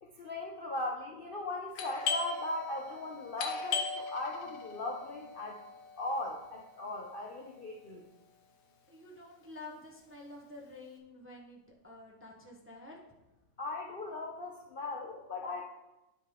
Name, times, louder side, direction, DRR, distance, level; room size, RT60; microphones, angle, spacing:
voice 1, 0.0-5.6 6.0-8.0 13.6-15.6, left 2 dB, 80° left, -1 dB, 0.4 m, -38 dB
Doorbell, 1.8-7.2, left 5 dB, 60° left, 1.3 m, -39 dB
voice 2, 8.9-13.0, left 2 dB, 15° right, -2 dB, 0.5 m, -49 dB
10.5 x 5.6 x 3.6 m, 0.99 s
omnidirectional pair, 2.0 m